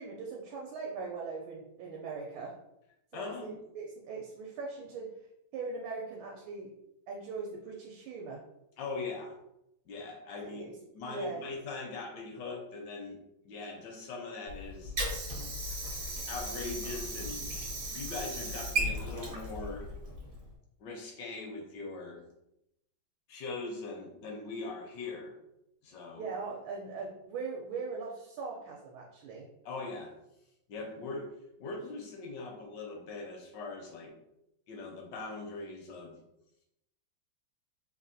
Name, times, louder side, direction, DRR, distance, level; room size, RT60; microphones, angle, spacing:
voice 1, 0.0-2.5 3.1-3.5 3.7-5.1 5.5-6.7 7.1-8.4 10.4-11.4 26.2-29.5, right 4 dB, 80° right, -1 dB, 1.3 m, -40 dB
voice 2, 3.1-3.6 8.8-9.3 9.9-10.6 10.9-13.2 13.4-15.4 16.3-17.5 17.9-19.9 20.8-22.2 23.3-25.3 25.8-26.3 29.6-30.1 30.7-31.3 31.6-34.1 34.7-36.1, left 3 dB, 75° left, 0 dB, 1.1 m, -41 dB
Water / Sink (filling or washing), 14.5-20.5, right 1 dB, 60° right, 0.9 m, -36 dB
3.4 x 2.3 x 2.5 m, 0.84 s
omnidirectional pair, 2.2 m